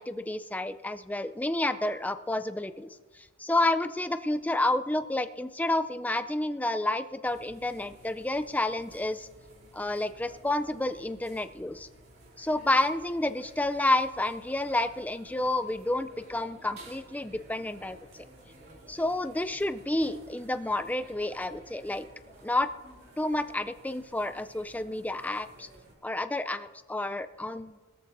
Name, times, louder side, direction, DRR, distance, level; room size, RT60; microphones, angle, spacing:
voice 1, 0.0-2.9 3.1-9.3 9.7-11.9 12.4-18.2 18.9-22.1 22.4-22.7 23.2-25.7 26.0-27.8, left 2 dB, 5° left, 10 dB, 0.4 m, -30 dB
sound 1, 7.2-25.9, right 1 dB, 45° right, 2.9 m, -54 dB
20.5 x 13.5 x 2.6 m, 1.3 s
head